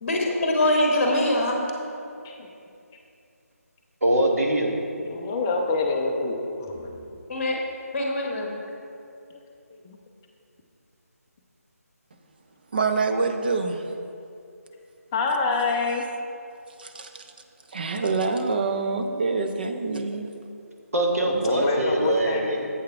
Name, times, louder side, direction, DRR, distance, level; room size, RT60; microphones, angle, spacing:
voice 1, 0.0-1.6 7.3-7.6 7.9-8.5, left 1 dB, 35° left, 0 dB, 1.1 m, -23 dB
voice 2, 4.0-4.7 20.9-22.7, right 1 dB, 65° right, 0 dB, 1.2 m, -23 dB
voice 3, 5.1-7.0 9.8-10.0 15.1-16.0 21.3-22.6, left 3 dB, 15° left, 1 dB, 0.4 m, -26 dB
voice 4, 12.7-13.8 16.8-17.1 17.7-20.3, right 4 dB, 35° right, 5 dB, 0.5 m, -26 dB
7.7 x 6.5 x 4.5 m, 2.6 s
figure-of-eight pair, 155°, 9 cm